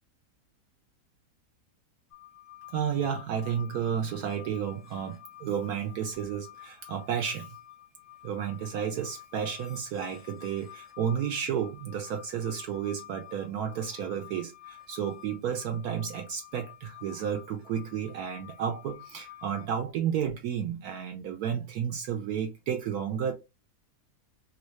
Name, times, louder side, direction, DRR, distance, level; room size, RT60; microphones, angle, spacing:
sound 1, 2.1-19.7, left 13 dB, 40° left, 0.5 m, -50 dB
voice 1, 2.7-7.6 8.2-23.3, right 8 dB, 70° right, 1.0 m, -32 dB
3.1 x 2.6 x 3.0 m
omnidirectional pair, 1.8 m